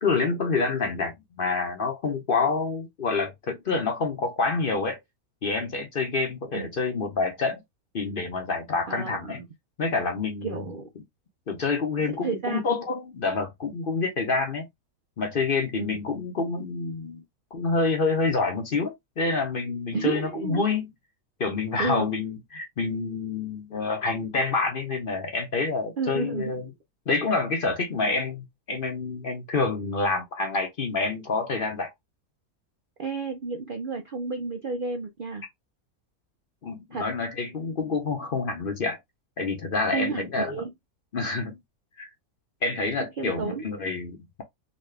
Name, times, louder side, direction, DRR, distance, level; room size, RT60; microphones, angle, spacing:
voice 1, 0.0-5.0 5.4-7.6 7.9-9.4 9.8-10.6 11.5-14.7 15.2-17.2 17.5-20.9 21.4-26.6 27.1-31.9 36.6-39.0 39.4-40.6 41.1-41.6 42.0-42.1 42.6-44.4, left 4 dB, 45° left, 0.8 m, -27 dB
voice 2, 8.9-9.5 10.4-10.9 12.0-12.7 15.8-16.0 19.9-20.6 21.8-22.1 26.0-26.6 33.0-35.4 36.9-37.1 39.8-40.7 43.2-43.7, right 4 dB, 55° right, 0.6 m, -31 dB
4.1 x 2.3 x 3.3 m
omnidirectional pair, 1.5 m